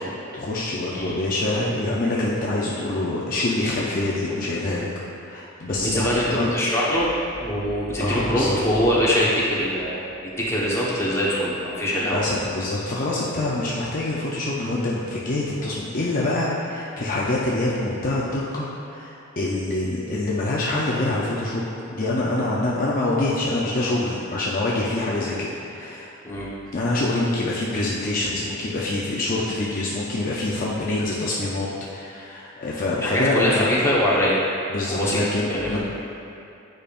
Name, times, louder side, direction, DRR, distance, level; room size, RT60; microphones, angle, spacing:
voice 1, 0.3-4.9 5.2-6.5 8.0-8.6 12.1-26.1 26.7-33.7 34.7-35.8, left 2 dB, 40° left, -5 dB, 0.6 m, -25 dB
voice 2, 5.7-7.1 7.4-12.2 26.2-26.5 33.0-34.4 34.9-35.8, equal, 15° left, -7 dB, 1.1 m, -23 dB
8.8 x 5.2 x 2.5 m, 2.7 s
head